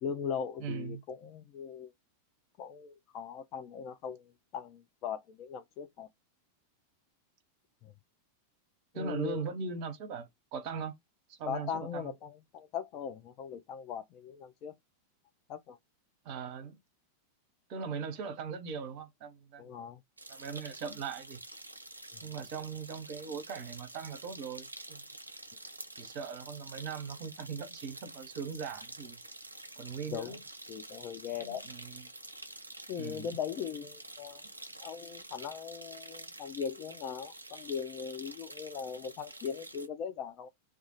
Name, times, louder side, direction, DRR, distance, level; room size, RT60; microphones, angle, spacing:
voice 1, 0.0-1.9 2.6-6.1 7.8-7.9 8.9-9.4 11.5-14.7 15.5-15.8 19.6-20.0 30.1-30.4 30.7-31.6 32.9-34.4 34.8-40.5, left 7 dB, 40° left, 0.4 m, -39 dB
voice 2, 0.6-1.0 8.9-10.9 11.3-12.1 16.2-16.8 17.7-19.6 20.3-21.4 22.2-25.0 26.0-29.2 29.8-30.4 31.4-32.0 32.9-33.4, right 5 dB, 45° right, 0.8 m, -40 dB
sound 1, 20.2-39.9, right 2 dB, 80° right, 0.4 m, -48 dB
2.3 x 2.3 x 2.8 m
figure-of-eight pair, 90°, 0 cm